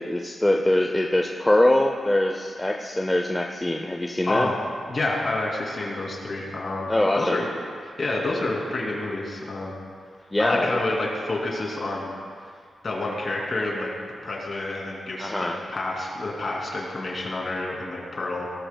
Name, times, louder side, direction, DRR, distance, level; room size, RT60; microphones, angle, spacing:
voice 1, 0.0-4.5 6.9-7.4 10.3-10.8 15.2-15.6, left 1 dB, 10° left, 2 dB, 0.5 m, -23 dB
voice 2, 4.3-4.6 4.9-6.9 7.1-7.4 7.8-9.7 10.4-12.1 12.8-13.9 14.2-18.5, left 2 dB, 40° left, -2 dB, 2.6 m, -28 dB
18.5 x 13.0 x 2.2 m, 2.1 s
wide cardioid pair, 155°, 0 cm